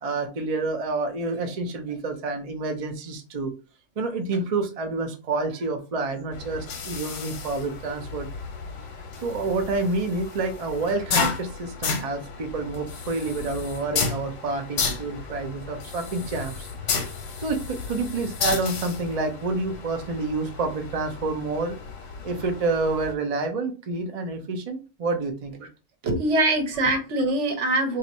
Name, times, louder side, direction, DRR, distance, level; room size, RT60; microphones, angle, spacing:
voice 1, 0.0-3.5 4.0-8.3 9.2-16.7 16.9-17.1 17.4-21.8 22.2-25.7, right 3 dB, 45° right, 5 dB, 0.5 m, -28 dB
sound 1, 6.3-23.1, left 5 dB, 70° left, 1.0 m, -33 dB
voice 2, 26.0-28.0, right 2 dB, 65° right, 4 dB, 1.1 m, -23 dB
2.6 x 2.6 x 4.1 m, 0.33 s
omnidirectional pair, 1.3 m